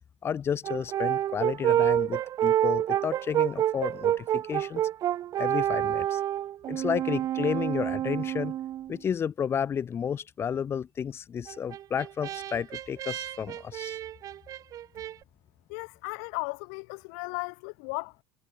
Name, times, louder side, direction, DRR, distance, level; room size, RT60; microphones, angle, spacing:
voice 1, 0.2-4.8 5.4-6.2 6.7-8.5 8.9-14.0, left 7 dB, 30° left, 2.0 m, -32 dB
Brass instrument, 0.6-9.0 11.5-15.1, right 12 dB, 45° right, 2.5 m, -28 dB
voice 2, 15.7-18.2, left 40 dB or more, 75° left, 3.5 m, -36 dB
supercardioid pair, 120°, 8 cm